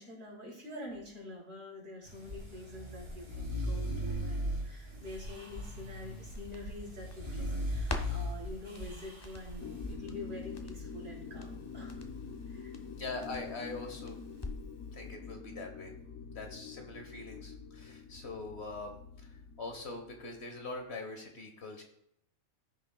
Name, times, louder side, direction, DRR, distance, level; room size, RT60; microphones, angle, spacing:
voice 1, 0.0-12.0 12.4-12.7, left 1 dB, 60° right, -3 dB, 3.7 m, -46 dB
sound 1, 2.1-9.9, equal, 40° right, 2.5 m, -38 dB
Crackle, 5.0-14.8 15.1-15.2, left 2 dB, 20° left, 0.7 m, -46 dB
sound 2, 9.6-20.4, left 5 dB, 75° left, 1.2 m, -46 dB
voice 2, 13.0-14.2 14.9-15.9 16.3-21.8, left 3 dB, 50° left, 3 dB, 1.4 m, -43 dB
14.5 x 6.6 x 2.3 m, 0.75 s
omnidirectional pair, 1.5 m